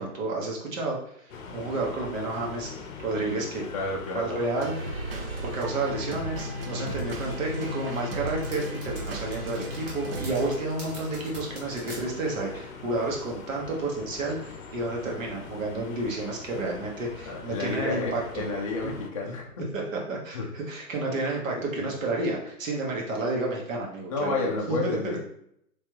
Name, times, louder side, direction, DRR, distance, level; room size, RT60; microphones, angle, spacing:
voice 1, 0.0-2.7 3.0-3.6 4.1-5.1 5.4-18.4 18.8-19.0 19.2-19.3 19.7-25.2, right 2 dB, 55° right, -1 dB, 1.4 m, -31 dB
sound 1, 1.3-19.1, left 4 dB, 60° left, 0.7 m, -43 dB
voice 2, 3.7-4.3 17.3-19.5 20.3-20.4 21.7-21.9 24.1-25.2, left 3 dB, 25° left, -2 dB, 0.4 m, -31 dB
sound 2, 4.6-10.6, equal, 40° right, 0.5 m, -35 dB
sound 3, 7.0-12.0, right 1 dB, 20° right, 0.8 m, -44 dB
3.3 x 3.3 x 3.0 m, 0.74 s
hypercardioid pair, 145°, 46 cm